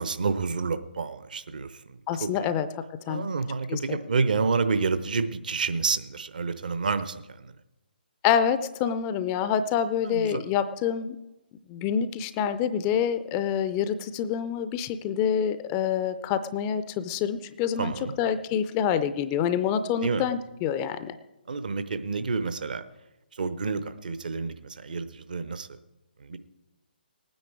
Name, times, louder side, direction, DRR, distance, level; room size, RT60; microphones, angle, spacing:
voice 1, 0.0-2.5 3.1-7.5 10.0-10.4 17.8-18.1 20.0-20.2 21.5-22.8 23.3-25.8 26.2-26.4, right 4 dB, 55° right, 12 dB, 0.9 m, -29 dB
voice 2, 2.1-2.7 3.1-3.3 3.7-4.0 8.2-11.2 11.7-17.9 18.2-21.2, left 8 dB, 20° left, 12 dB, 0.4 m, -27 dB
19.0 x 9.4 x 4.7 m, 1.0 s
figure-of-eight pair, 140°, 5 cm